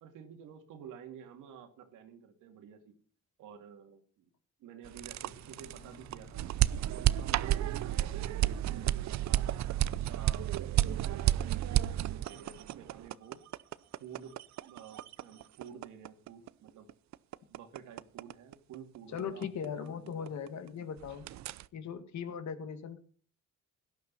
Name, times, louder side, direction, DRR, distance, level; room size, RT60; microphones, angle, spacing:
voice 1, 0.0-2.9 3.4-4.3 4.6-6.4 6.9-9.5 9.8-10.5 10.9-13.4 14.0-16.9 17.5-19.5 19.8-20.6, right 8 dB, 90° right, 6 dB, 2.6 m, -51 dB
sound 1, 4.8-14.9 15.6-15.7, left 3 dB, 35° left, 3.1 m, -60 dB
sound 2, 4.8-20.7 21.0-21.6, right 13 dB, 65° right, 0.6 m, -32 dB
voice 2, 19.1-21.3 21.7-23.0, left 7 dB, 65° left, 10 dB, 2.0 m, -39 dB
17.5 x 12.0 x 4.1 m, 0.41 s
cardioid pair, 90°, 30 cm